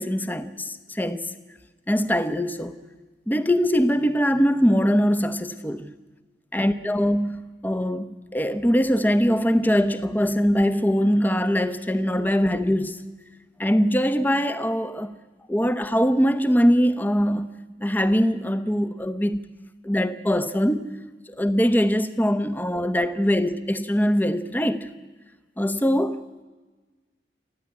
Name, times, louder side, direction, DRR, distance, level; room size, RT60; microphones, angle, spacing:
voice 1, 0.0-1.3 1.9-2.7 3.3-5.8 6.5-13.0 13.6-15.2 15.5-17.5 17.8-19.4 19.8-20.9 21.3-24.9 25.6-26.2, equal, 10° left, 0.9 m, -22 dB
29.5 x 12.0 x 9.7 m
head